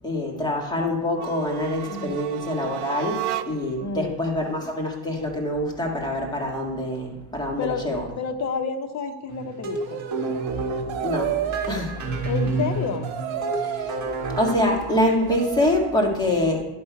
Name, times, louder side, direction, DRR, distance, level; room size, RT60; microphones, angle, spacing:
voice 1, 0.0-8.0 11.0-11.3 11.7-12.0 13.6-13.9 14.3-16.6, left 1 dB, 10° left, -1 dB, 1.7 m, -25 dB
sound 1, 1.1-3.8, right 12 dB, 55° right, 0.5 m, -33 dB
voice 2, 1.9-2.2 3.8-4.2 7.6-7.9 8.2-10.0 12.2-13.1, left 5 dB, 35° left, 7 dB, 0.8 m, -29 dB
sound 2, 9.3-14.5, right 3 dB, 35° right, 1.8 m, -29 dB
sound 3, 9.8-15.9, right 10 dB, 70° right, 1.2 m, -32 dB
11.0 x 5.5 x 4.6 m, 1.0 s
cardioid pair, 145°, 48 cm